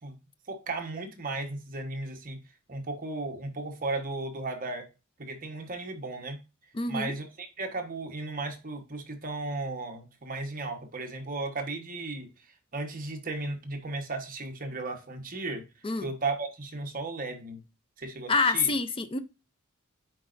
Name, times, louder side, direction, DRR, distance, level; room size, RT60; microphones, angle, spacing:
voice 1, 0.5-2.4 2.7-4.9 5.2-6.4 6.9-12.3 12.7-15.6 16.0-17.6 18.0-18.7, right 3 dB, 40° right, 1.2 m, -35 dB
voice 2, 6.7-7.1 15.8-16.1 18.3-19.2, left 4 dB, 25° left, 0.5 m, -27 dB
9.4 x 4.1 x 2.5 m
head